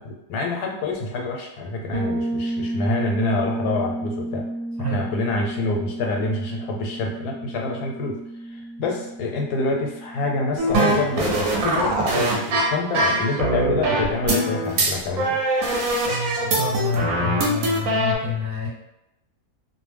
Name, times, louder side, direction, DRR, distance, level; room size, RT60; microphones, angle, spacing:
voice 1, 0.0-4.5 4.8-8.2 8.8-15.4, left 3 dB, 90° left, 1 dB, 1.1 m, -27 dB
Bass guitar, 1.9-11.6, right 1 dB, 90° right, 1.1 m, -32 dB
sound 1, 10.6-18.1, right 1 dB, 70° right, 1.0 m, -22 dB
voice 2, 16.5-18.7, left 3 dB, 30° right, -6 dB, 1.0 m, -27 dB
2.6 x 2.0 x 3.3 m, 0.86 s
omnidirectional pair, 1.7 m